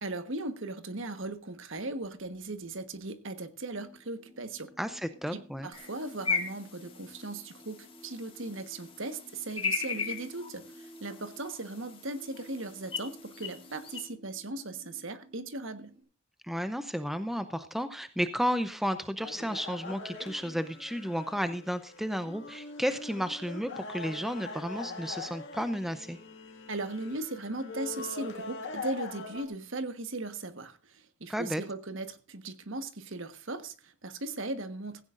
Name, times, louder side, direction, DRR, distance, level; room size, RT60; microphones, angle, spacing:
voice 1, 0.0-4.7 5.3-15.9 26.7-35.0, right 2 dB, 60° right, 1.3 m, -38 dB
sound 1, 3.7-16.0, right 1 dB, 30° right, 6.2 m, -55 dB
voice 2, 4.8-5.7 16.5-26.2 31.3-31.6, equal, ahead, 0.6 m, -33 dB
sound 2, 5.7-14.1, left 5 dB, 25° left, 1.9 m, -38 dB
sound 3, 19.2-29.4, left 4 dB, 50° left, 2.0 m, -42 dB
16.5 x 16.0 x 2.5 m
head